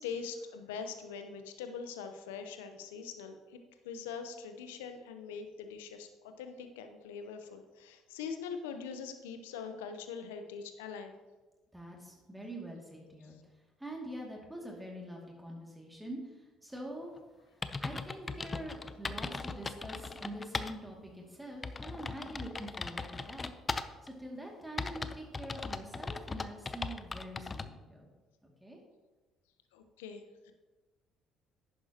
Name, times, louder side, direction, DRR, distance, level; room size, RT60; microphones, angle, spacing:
voice 1, 0.0-3.6 3.8-11.1 29.7-30.5, left 6 dB, 85° left, 7 dB, 0.8 m, -43 dB
voice 2, 11.7-13.4 13.8-17.1 17.8-23.5 23.8-28.1 28.4-28.8, right 1 dB, 10° right, -1 dB, 2.3 m, -45 dB
sound 1, 17.2-17.3 17.6-20.7 21.1-21.2 21.6-24.1 24.8-27.7, left 4 dB, 30° left, 0.6 m, -39 dB
11.0 x 9.4 x 2.9 m, 1.2 s
hypercardioid pair, 60°, 0 cm